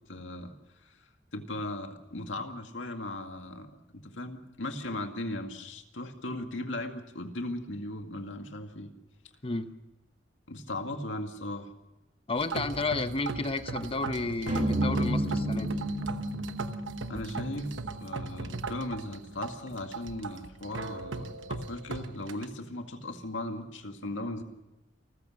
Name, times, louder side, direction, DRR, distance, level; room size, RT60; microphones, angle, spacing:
voice 1, 0.1-0.5 0.8-1.0 1.3-8.9 10.5-11.7 17.1-17.7 18.0-24.4, left 1 dB, 85° left, 5 dB, 2.1 m, -37 dB
voice 2, 12.3-15.7, left 3 dB, 30° left, 10 dB, 0.9 m, -32 dB
sound 1, 12.3-22.4, right 3 dB, 90° right, 1.1 m, -39 dB
sound 2, 14.5-18.8, right 1 dB, 45° right, 2.9 m, -32 dB
29.0 x 14.5 x 6.4 m, 1.0 s
head